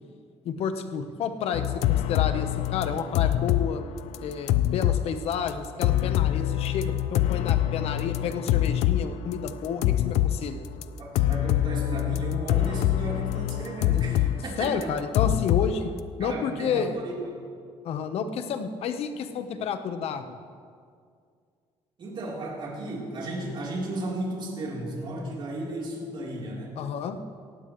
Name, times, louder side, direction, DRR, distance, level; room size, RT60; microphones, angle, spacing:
voice 1, 0.4-3.8 4.2-10.6 14.6-15.9 16.2-16.9 17.8-20.4 26.8-27.2, left 7 dB, 70° left, 8 dB, 1.0 m, -30 dB
sound 1, 1.5-3.7 4.0-5.0 5.3-5.5 5.8-9.0 9.3-10.4 10.8-10.9 11.2-14.4 14.6-15.7, left 13 dB, 90° left, 0.5 m, -24 dB
voice 2, 11.0-14.9 16.2-17.4 22.0-26.8, right 1 dB, 50° right, -4 dB, 3.7 m, -34 dB
18.0 x 15.5 x 3.2 m, 2.2 s
cardioid pair, 110°, 11 cm